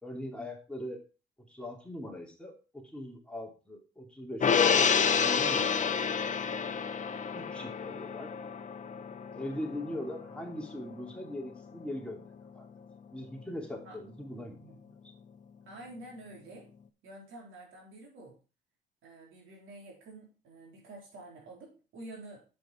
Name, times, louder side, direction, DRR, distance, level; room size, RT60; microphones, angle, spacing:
voice 1, 0.0-1.0 1.5-6.0 7.3-8.3 9.3-12.7 13.1-14.6, left 1 dB, 5° left, 0 dB, 2.8 m, -41 dB
Gong, 4.4-11.0 11.4-11.5, left 6 dB, 40° left, 1.0 m, -29 dB
voice 2, 14.5-14.9 15.6-16.7 17.0-18.4 19.0-22.4, right 2 dB, 85° right, -1 dB, 4.2 m, -49 dB
7.6 x 7.6 x 4.4 m, 0.34 s
cardioid pair, 90°, 20 cm